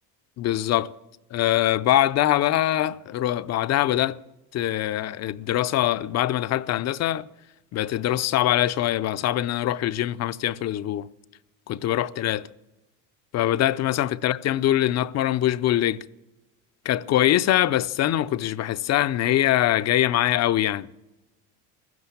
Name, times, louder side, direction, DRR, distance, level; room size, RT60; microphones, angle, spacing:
voice 1, 0.4-0.9 1.3-4.2 4.5-7.3 7.7-11.1 11.7-12.5 13.3-16.0 16.8-20.9, left 13 dB, 45° left, 0.6 m, -23 dB
15.5 x 12.5 x 7.1 m
supercardioid pair, 105°, 37 cm